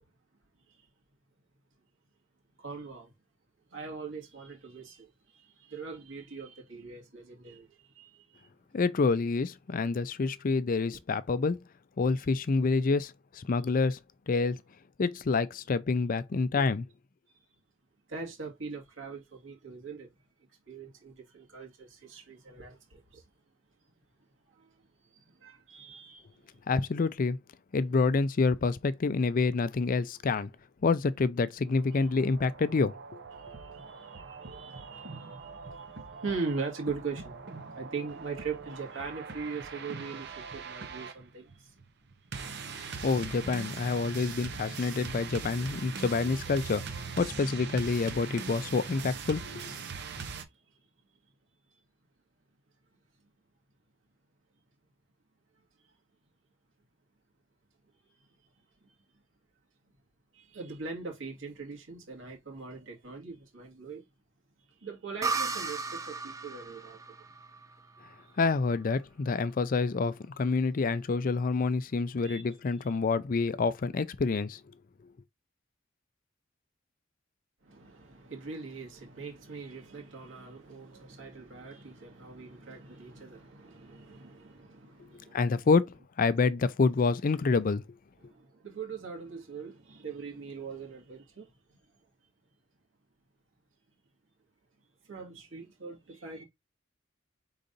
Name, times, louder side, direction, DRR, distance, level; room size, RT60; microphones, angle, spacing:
voice 1, 2.6-3.1 3.7-8.5 17.3-17.5 18.1-20.1 20.7-23.2 24.5-26.5 31.9-32.1 33.4-37.4 37.7-41.7 50.5-50.8 58.8-58.9 60.3-64.0 64.6-67.0 68.2-68.3 72.2-72.4 72.8-72.9 77.6-85.7 88.2-91.8 95.0-96.4, right 4 dB, 80° right, 2.0 m, -41 dB
voice 2, 8.7-11.6 12.0-14.0 14.3-14.6 15.0-16.9 26.7-27.4 27.7-30.5 30.8-32.9 43.0-49.7 68.4-74.6 85.3-87.8, left 4 dB, 45° left, 0.4 m, -27 dB
sound 1, 31.7-50.4, right 5 dB, 60° right, 0.8 m, -42 dB
sound 2, 65.2-68.8, right 4 dB, 15° right, 0.5 m, -36 dB
5.2 x 3.9 x 2.6 m
head